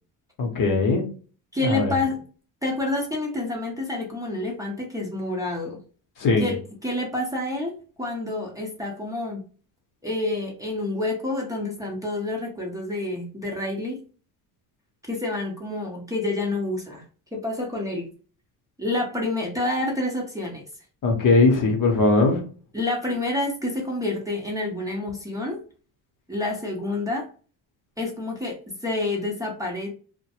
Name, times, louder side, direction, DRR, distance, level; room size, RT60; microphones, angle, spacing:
voice 1, 0.4-1.0 1.6-1.9 6.2-6.5 21.0-22.4, left 3 dB, 50° left, 2 dB, 0.9 m, -20 dB
voice 2, 1.5-2.2 2.6-5.8 6.4-9.5 10.0-14.0 15.1-17.0 17.3-18.1 18.8-20.6 22.7-25.6 26.3-27.3 28.0-28.6 28.8-29.9, left 2 dB, 10° right, -1 dB, 0.7 m, -28 dB
2.1 x 2.1 x 2.8 m, 0.38 s
supercardioid pair, 90°, 42 cm